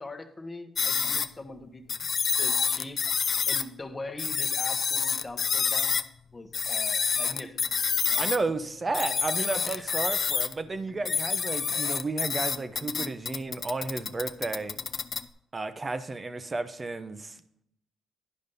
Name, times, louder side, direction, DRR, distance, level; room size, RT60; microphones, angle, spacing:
voice 1, 0.0-1.8 2.4-3.1 3.5-6.0 6.3-7.6 8.1-8.3 9.7-9.9 10.9-11.0, left 2 dB, 25° left, 7 dB, 1.0 m, -42 dB
sound 1, 0.8-1.3 1.9-3.6 4.2-6.1 6.5-8.4 8.9-10.5 11.0-15.2, left 6 dB, 50° left, 0.5 m, -28 dB
voice 2, 8.2-14.8 15.5-17.4, right 3 dB, 25° right, 11 dB, 0.7 m, -32 dB
10.5 x 5.2 x 5.4 m, 0.74 s
cardioid pair, 90°, 0 cm